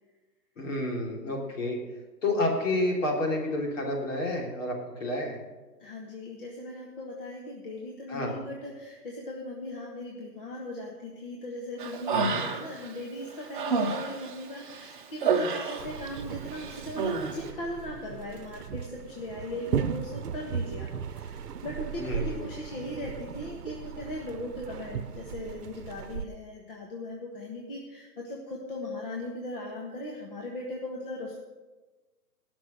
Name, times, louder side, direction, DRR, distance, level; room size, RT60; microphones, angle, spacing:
voice 1, 0.6-1.8 2.2-4.7 5.0-5.4 8.1-8.3 12.1-12.4 22.0-22.5, left 1 dB, 50° left, -1 dB, 3.4 m, -29 dB
voice 2, 5.8-31.4, left 1 dB, 35° left, -2 dB, 1.5 m, -39 dB
Human voice, 11.8-12.9 13.3-16.2 16.5-17.4, right 5 dB, 30° right, 1.0 m, -29 dB
sound 1, 15.8-26.2, right 7 dB, 70° right, 0.9 m, -37 dB
17.5 x 6.2 x 6.7 m, 1.2 s
hypercardioid pair, 165°, 47 cm